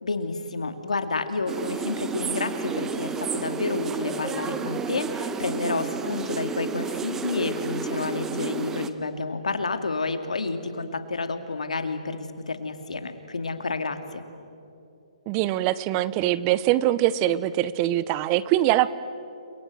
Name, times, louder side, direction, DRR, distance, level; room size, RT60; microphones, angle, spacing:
voice 1, 0.0-14.2, left 3 dB, 85° left, 8 dB, 2.5 m, -30 dB
sound 1, 1.5-8.9, right 5 dB, 10° right, 1.1 m, -31 dB
voice 2, 15.3-18.9, right 14 dB, 30° right, 17 dB, 0.8 m, -23 dB
30.0 x 23.0 x 7.9 m, 2.7 s
hypercardioid pair, 145°, 4 cm